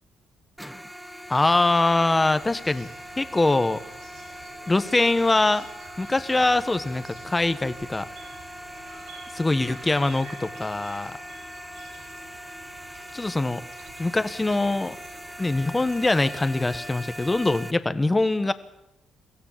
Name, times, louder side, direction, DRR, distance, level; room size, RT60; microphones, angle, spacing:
sound 1, 0.6-17.7, equal, ahead, 1.0 m, -41 dB
voice 1, 1.3-2.9 3.2-3.8 4.7-5.7 6.0-8.1 9.3-11.2 13.1-13.6 14.0-15.0 15.4-18.5, left 2 dB, 20° left, 12 dB, 1.3 m, -23 dB
sound 2, 1.9-17.6, right 5 dB, 90° right, 4.2 m, -49 dB
23.5 x 15.5 x 7.5 m, 0.89 s
cardioid pair, 90°, 0 cm